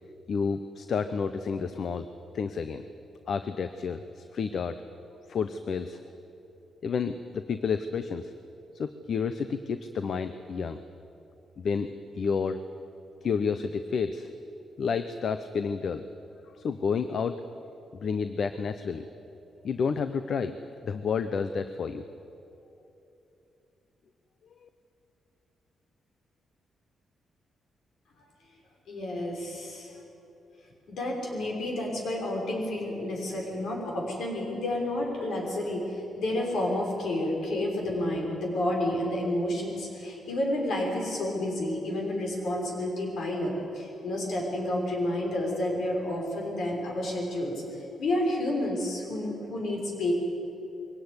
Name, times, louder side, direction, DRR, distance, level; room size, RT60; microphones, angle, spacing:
voice 1, 0.3-2.1 2.3-2.8 3.3-4.8 5.3-6.0 6.8-8.3 8.7-10.8 11.6-12.6 13.2-14.3 14.8-16.0 16.5-17.4 18.0-19.1 19.6-20.5 20.8-22.0 24.6-24.7, left 5 dB, 55° left, 10 dB, 0.9 m, -30 dB
voice 2, 28.9-29.9 30.9-47.6 48.0-50.1, left 1 dB, 70° left, 0 dB, 6.0 m, -30 dB
22.5 x 17.5 x 9.8 m, 2.8 s
cardioid pair, 115°, 0 cm